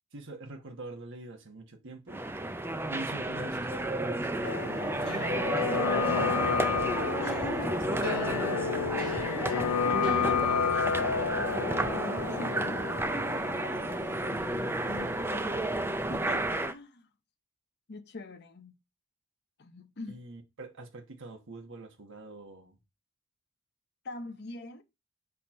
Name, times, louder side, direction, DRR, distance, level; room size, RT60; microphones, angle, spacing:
voice 1, 0.1-2.2 2.9-5.1 5.4-6.8 7.5-9.5 10.8-11.4 15.0-15.7 20.1-22.8, right 2 dB, 55° right, 1.1 m, -44 dB
sound 1, 2.1-16.7, right 1 dB, 10° right, 0.4 m, -32 dB
sound 2, 4.4-16.2 16.4-16.5, left 6 dB, 75° left, 0.5 m, -32 dB
voice 2, 7.2-8.1 9.8-10.9 11.4-13.9 14.3-15.7 16.1-17.1 17.9-18.8 19.6-20.2 24.0-24.8, left 2 dB, 50° left, 0.7 m, -44 dB
6.8 x 2.9 x 5.2 m
head